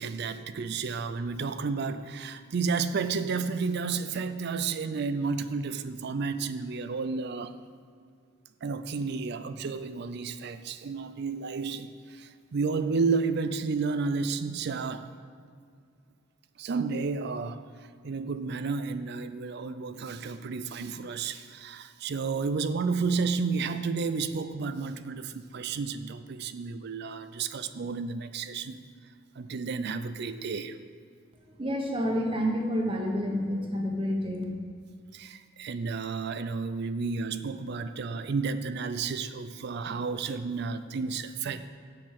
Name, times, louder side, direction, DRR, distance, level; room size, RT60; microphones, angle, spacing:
voice 1, 0.0-7.6 8.6-15.1 16.6-17.6 18.0-28.8 29.4-30.8 35.1-41.7, right 4 dB, 50° right, 11 dB, 0.4 m, -31 dB
voice 2, 31.4-34.4, equal, 25° right, 1 dB, 1.3 m, -29 dB
7.4 x 6.6 x 7.6 m, 2.2 s
head